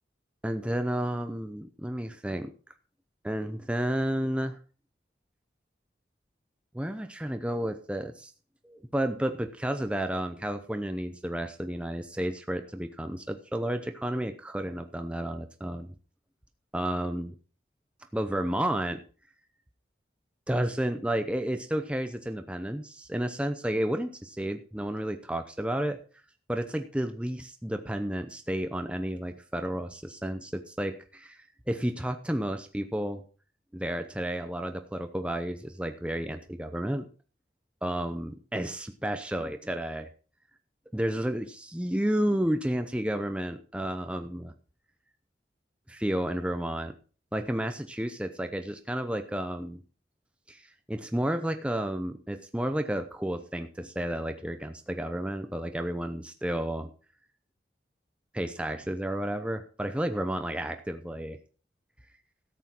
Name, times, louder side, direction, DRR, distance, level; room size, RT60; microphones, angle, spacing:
voice 1, 0.4-2.5 3.2-4.6 6.7-8.3 8.6-15.9 16.7-17.3 18.1-19.0 20.5-26.0 26.5-33.2 33.7-37.1 37.8-40.1 40.9-44.5 45.9-46.9 47.3-49.8 50.5-56.9 58.3-61.4, right 1 dB, 5° right, 7 dB, 0.7 m, -31 dB
13.5 x 8.2 x 4.5 m, 0.37 s
head